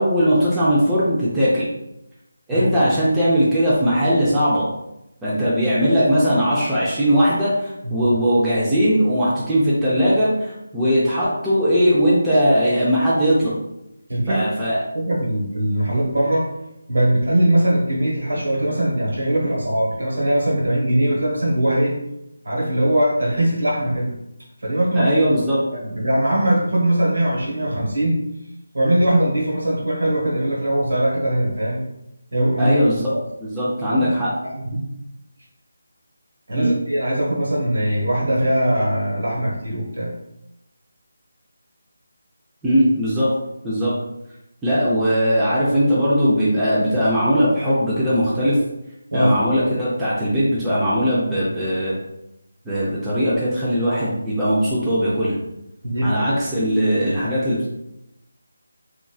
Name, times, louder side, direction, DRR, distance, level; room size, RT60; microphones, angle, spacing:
voice 1, 0.0-1.7 2.5-4.7 5.2-13.5 14.3-14.8 24.9-25.6 32.6-33.0 33.4-34.3 36.6-36.7 42.6-43.3 43.6-43.9 44.6-48.6 49.1-51.9 52.6-55.3 56.0-57.7, equal, 5° right, -10 dB, 0.5 m, -19 dB
voice 2, 2.5-3.0 7.8-8.1 14.1-14.4 14.9-16.5 16.9-21.9 22.4-24.1 24.6-25.1 25.7-28.2 28.7-31.8 32.3-32.7 33.9-34.1 34.4-34.8 36.5-40.1 49.1-49.4 55.8-56.3, right 1 dB, 75° right, -4 dB, 1.3 m, -21 dB
3.1 x 2.5 x 2.3 m, 0.88 s
figure-of-eight pair, 165°, 0 cm